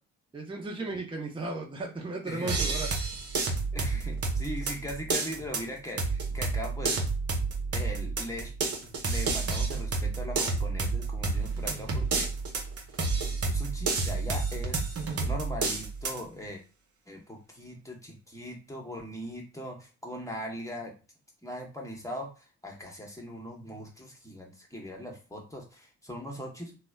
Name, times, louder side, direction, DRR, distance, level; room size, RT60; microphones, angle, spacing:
voice 1, 0.3-2.9, right 2 dB, 15° right, -1 dB, 0.8 m, -35 dB
voice 2, 2.3-3.1 3.7-7.0 7.7-8.5 9.0-12.3 13.4-16.6 17.1-20.9 21.4-26.8, equal, 10° left, 1 dB, 1.1 m, -40 dB
sound 1, 2.5-16.2, right 3 dB, 45° right, 0.9 m, -30 dB
3.0 x 2.1 x 2.3 m, 0.35 s
hypercardioid pair, 50°, 35 cm